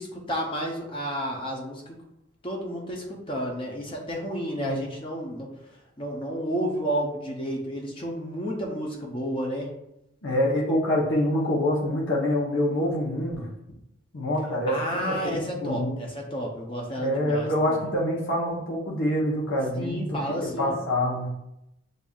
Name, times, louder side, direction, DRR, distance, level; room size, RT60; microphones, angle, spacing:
voice 1, 0.0-2.0 2.4-9.7 14.7-17.8 19.8-20.7, equal, 25° left, 0 dB, 0.5 m, -31 dB
voice 2, 10.2-13.5 14.1-15.9 17.0-21.3, left 1 dB, 70° left, -4 dB, 0.9 m, -26 dB
6.5 x 2.6 x 2.3 m, 0.85 s
head